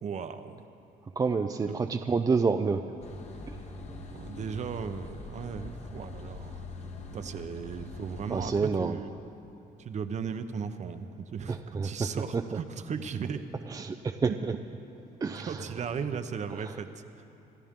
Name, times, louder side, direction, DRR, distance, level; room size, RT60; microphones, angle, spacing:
voice 1, 0.0-0.7 1.7-1.8 3.9-6.6 7.1-8.5 8.8-9.1 9.8-13.4 15.3-17.0, right 6 dB, 45° right, 9 dB, 0.9 m, -36 dB
voice 2, 1.2-2.8 3.5-3.7 8.3-9.0 11.5-12.1 12.3-12.4 13.7-14.5 15.2-15.7 16.5-16.8, right 4 dB, 20° right, 6 dB, 0.5 m, -29 dB
sound 1, 3.0-8.6, left 2 dB, 40° left, 1.4 m, -43 dB
26.5 x 13.5 x 3.7 m, 2.9 s
cardioid pair, 110°, 17 cm